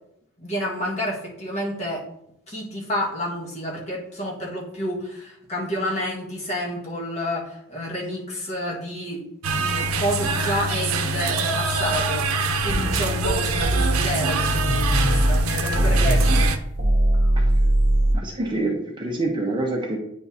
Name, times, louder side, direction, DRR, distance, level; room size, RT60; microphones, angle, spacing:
voice 1, 0.4-2.1 2.5-9.3 9.5-12.3 12.6-16.5, equal, 30° left, -5 dB, 1.6 m, -29 dB
sound 1, 9.4-16.6, right 3 dB, 85° right, 0.6 m, -25 dB
sound 2, 12.7-15.4 15.7-18.1, right 1 dB, 40° right, 1.3 m, -21 dB
voice 2, 18.1-20.0, right 2 dB, 20° right, 0 dB, 0.8 m, -26 dB
9.2 x 4.5 x 2.7 m, 0.75 s
head